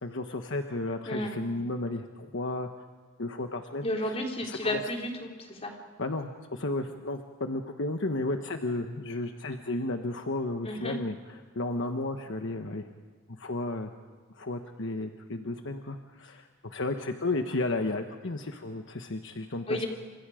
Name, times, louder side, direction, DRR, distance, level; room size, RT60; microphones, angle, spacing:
voice 1, 0.0-2.7 3.2-4.2 4.4-4.8 6.0-11.1 11.5-12.8 13.3-13.9 14.3-19.8, left 2 dB, 65° left, 5 dB, 1.2 m, -33 dB
voice 2, 3.8-5.8 10.6-11.0 19.7-19.9, left 1 dB, 30° left, 1 dB, 3.7 m, -32 dB
29.0 x 26.5 x 5.1 m, 1.5 s
head